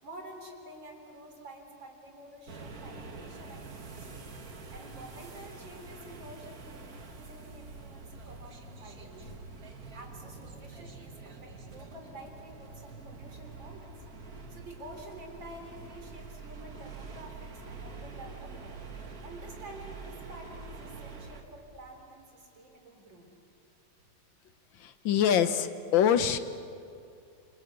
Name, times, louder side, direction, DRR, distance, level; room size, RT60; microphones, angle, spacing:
voice 1, 0.0-4.2 4.7-9.4 9.9-13.9 14.3-23.3, right 1 dB, 80° right, 3 dB, 4.4 m, -49 dB
sound 1, 2.5-21.4, right 4 dB, 50° right, 2.3 m, -46 dB
voice 2, 24.8-26.4, left 8 dB, 85° left, 11 dB, 1.8 m, -25 dB
28.0 x 26.0 x 8.2 m, 2.5 s
omnidirectional pair, 2.0 m